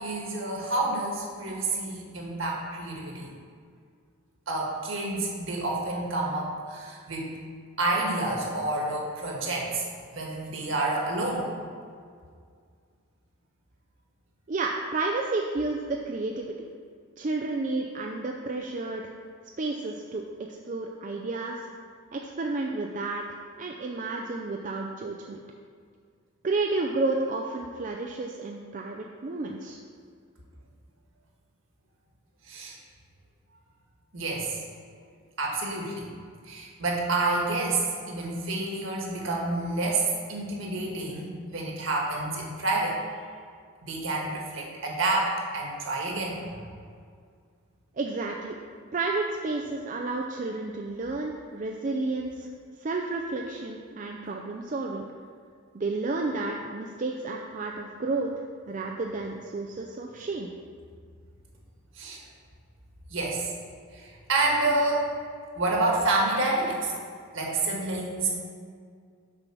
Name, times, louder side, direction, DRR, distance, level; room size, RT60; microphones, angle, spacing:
voice 1, 0.0-3.3 4.5-7.4 7.8-9.9 10.1-11.5 32.5-32.8 34.1-34.6 35.4-36.1 36.4-43.0 43.8-46.7 62.0-62.2 63.1-63.5 63.9-65.1 65.5-66.9 67.3-68.3, right 2 dB, 65° right, -2 dB, 1.6 m, -28 dB
voice 2, 14.5-16.7 17.2-19.1 19.6-20.2 20.5-21.6 22.1-23.2 23.6-25.4 26.4-29.8 48.0-48.6 48.9-52.5 52.8-55.0 55.7-58.3 58.7-60.5, right 3 dB, 35° right, 1 dB, 0.4 m, -31 dB
6.7 x 5.5 x 6.1 m, 2.1 s
head